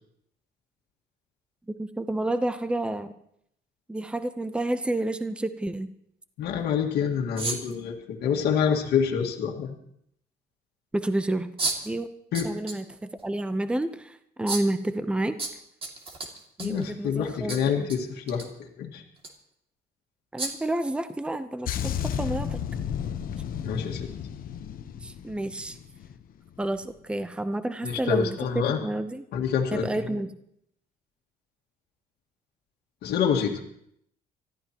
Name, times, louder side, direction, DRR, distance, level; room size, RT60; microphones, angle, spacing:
voice 1, 1.7-3.1 3.9-5.9 10.9-11.5 11.8-12.1 12.4-15.4 16.6-17.9 20.3-22.6 25.0-25.8 26.6-28.4 28.7-29.2 29.7-30.3, right 1 dB, 5° right, 10 dB, 0.8 m, -30 dB
voice 2, 6.4-9.8 12.3-12.5 16.6-19.0 23.6-24.1 27.8-28.8 29.3-29.9 33.0-33.6, left 7 dB, 75° left, 0 dB, 1.9 m, -27 dB
sound 1, 7.4-7.8 9.3-9.4 11.6-11.9 12.3-12.8 13.2-13.3 14.5-14.7 15.4-16.9 17.5-18.0 18.3-18.5 19.2-19.3 20.4-20.7, right 3 dB, 35° right, 2.4 m, -32 dB
sound 2, 21.7-26.2 26.5-26.8, left 9 dB, 60° left, 1.0 m, -33 dB
24.5 x 14.0 x 3.0 m, 0.71 s
cardioid pair, 110°, 17 cm